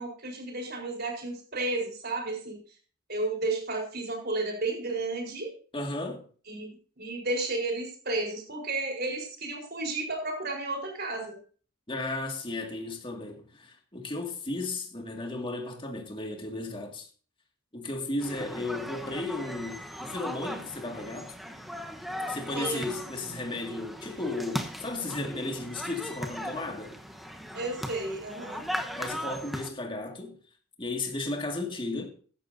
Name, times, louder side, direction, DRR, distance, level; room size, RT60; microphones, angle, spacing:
voice 1, 0.0-2.6 3.1-5.5 6.5-6.7 7.0-11.4 22.5-22.9 27.5-28.7, right 2 dB, 50° right, 4.2 m, -32 dB
voice 2, 5.7-6.3 11.9-17.1 17.7-21.3 22.3-27.0 29.0-30.4 30.8-32.1, left 2 dB, 25° left, 2.1 m, -34 dB
sound 1, 18.2-29.7, equal, ahead, 1.0 m, -38 dB
15.0 x 11.5 x 2.7 m
head